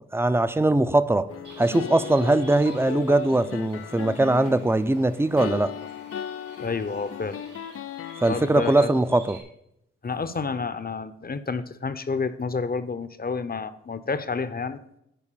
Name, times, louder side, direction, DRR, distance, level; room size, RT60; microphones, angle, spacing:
voice 1, 0.1-1.3 1.6-5.7 8.2-9.4, right 2 dB, 10° right, 12 dB, 0.7 m, -21 dB
sound 1, 1.3-8.8, left 8 dB, 50° left, 0.5 m, -36 dB
Bird, 1.4-9.4, right 3 dB, 85° right, 2.3 m, -49 dB
voice 2, 6.6-7.4 8.3-9.2 10.0-14.8, left 4 dB, 30° left, 12 dB, 0.9 m, -30 dB
10.0 x 4.5 x 6.8 m, 0.79 s
supercardioid pair, 45°, 29 cm